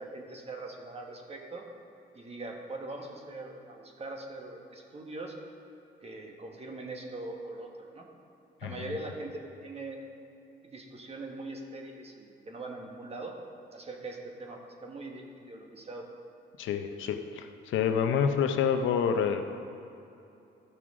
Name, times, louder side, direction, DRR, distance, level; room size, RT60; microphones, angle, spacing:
voice 1, 0.0-1.7 2.1-5.3 6.0-8.1 8.6-10.0 10.6-13.3 13.7-16.1, right 2 dB, 30° right, 1 dB, 1.4 m, -41 dB
voice 2, 16.6-19.6, left 7 dB, 80° left, 7 dB, 0.6 m, -28 dB
13.5 x 6.0 x 3.7 m, 2.8 s
cardioid pair, 90°, 20 cm